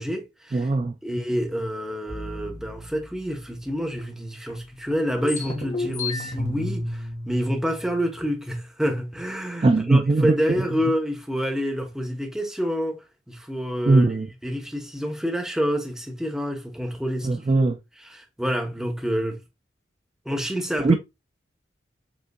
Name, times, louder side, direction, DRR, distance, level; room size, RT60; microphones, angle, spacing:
voice 1, 0.0-0.7 1.0-14.1 14.4-17.7 18.0-19.4 20.2-21.0, equal, 5° right, 0.9 m, -28 dB
voice 2, 0.5-0.9 9.6-10.4 13.9-14.3 17.2-17.8 20.8-21.0, right 3 dB, 30° right, 0.3 m, -19 dB
sound 1, 2.1-4.0 4.5-4.6 4.9-8.4, left 2 dB, 40° left, 1.6 m, -33 dB
5.2 x 3.5 x 2.3 m
head